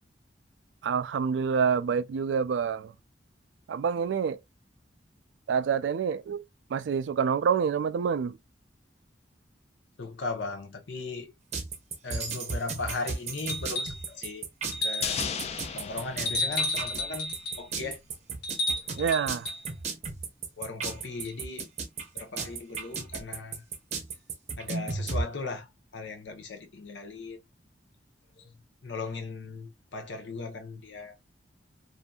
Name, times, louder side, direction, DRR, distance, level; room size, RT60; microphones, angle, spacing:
voice 1, 0.8-2.9 3.7-4.4 5.5-6.4 6.7-8.4 19.0-19.5, right 6 dB, 85° right, 0.3 m, -27 dB
voice 2, 10.0-11.3 12.0-14.5 14.8-15.2 15.7-18.0 20.6-21.7 22.1-23.6 24.6-27.4 28.3-31.2, left 3 dB, 85° left, 0.7 m, -38 dB
sound 1, 11.5-25.2, right 4 dB, 40° right, 0.6 m, -34 dB
sound 2, 13.5-14.1 14.7-15.3 16.3-17.6 18.4-19.6 21.3-21.4, left 2 dB, 60° left, 1.2 m, -32 dB
sound 3, 15.0-17.4 17.7-17.8, left 7 dB, 35° left, 0.3 m, -35 dB
2.7 x 2.4 x 2.2 m
head